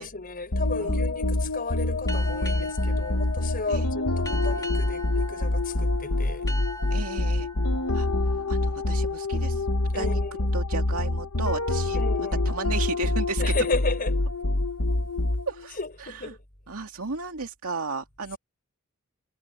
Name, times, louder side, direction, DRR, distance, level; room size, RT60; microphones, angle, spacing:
voice 1, 0.0-6.5 9.9-10.5 11.9-12.5 13.4-14.2 15.7-16.4, left 3 dB, 40° left, 5.8 m, -34 dB
sound 1, 0.5-15.7, left 2 dB, 90° left, 1.3 m, -26 dB
sound 2, 2.1-9.4, equal, 15° left, 2.5 m, -42 dB
voice 2, 6.9-7.5 7.9-8.1 8.5-9.7 9.9-10.2 10.5-13.4 15.5-16.3 16.7-18.4, right 4 dB, 90° right, 2.3 m, -34 dB
head